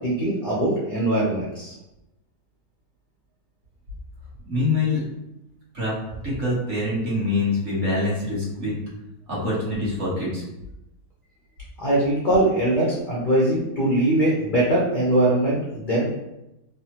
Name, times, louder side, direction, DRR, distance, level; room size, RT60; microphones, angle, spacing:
voice 1, 0.0-1.7 11.8-16.1, right 1 dB, 70° left, -5 dB, 0.4 m, -21 dB
voice 2, 4.5-5.0 5.7-6.0 6.2-8.7 9.3-10.4, left 2 dB, 50° right, -7 dB, 1.3 m, -24 dB
3.3 x 2.1 x 2.8 m, 0.91 s
omnidirectional pair, 1.8 m